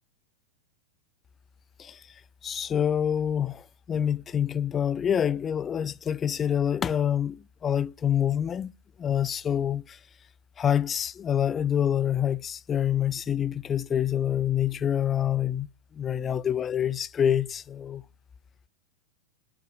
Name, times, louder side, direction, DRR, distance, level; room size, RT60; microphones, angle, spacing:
voice 1, 2.4-8.7 9.0-10.0 10.6-15.7 15.9-18.0, left 9 dB, 25° left, 0.4 m, -26 dB
9.5 x 5.8 x 4.8 m
figure-of-eight pair, 90°, 0 cm